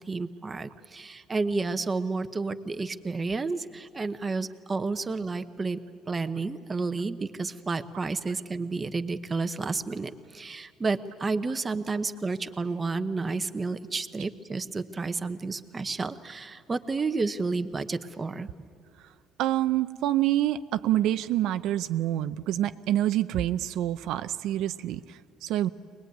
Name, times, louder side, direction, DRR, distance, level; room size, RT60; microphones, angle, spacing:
voice 1, 0.1-5.8 6.1-18.5, right 3 dB, 20° right, 10 dB, 0.9 m, -31 dB
voice 2, 19.4-25.7, right 13 dB, 70° right, 11 dB, 0.6 m, -27 dB
24.0 x 20.0 x 9.3 m, 2.5 s
cardioid pair, 140°, 0 cm